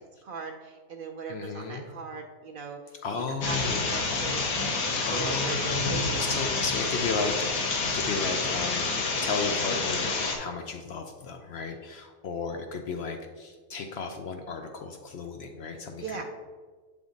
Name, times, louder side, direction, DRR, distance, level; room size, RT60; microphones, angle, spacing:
voice 1, 0.2-2.8 3.1-3.6 3.9-6.3 7.2-7.3 16.0-16.2, right 5 dB, 75° right, 2 dB, 0.5 m, -39 dB
voice 2, 1.3-1.9 3.0-3.8 4.1-4.2 5.1-7.7 7.9-16.2, left 4 dB, 65° left, 5 dB, 0.7 m, -34 dB
sound 1, 3.4-10.4, left 3 dB, 90° left, 1.3 m, -28 dB
7.1 x 3.6 x 3.8 m, 1.4 s
omnidirectional pair, 1.5 m